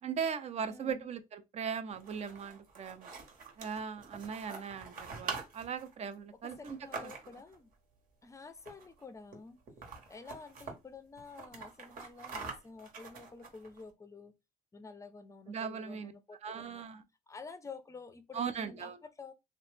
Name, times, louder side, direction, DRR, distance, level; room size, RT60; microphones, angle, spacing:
voice 1, 0.0-3.1 3.6-7.1 15.5-16.1 16.4-17.0 18.3-19.0, right 6 dB, 40° right, 0.4 m, -39 dB
voice 2, 0.7-1.1 6.6-7.7 8.2-9.6 10.1-14.3 14.7-16.9 17.3-18.9 19.2-19.3, left 4 dB, 20° left, 0.5 m, -50 dB
sound 1, 1.9-7.5 8.6-9.0 9.3-9.4 9.7-10.7 11.2-13.8, right 5 dB, 55° right, 1.0 m, -45 dB
2.9 x 2.0 x 3.2 m
cardioid pair, 110°, 17 cm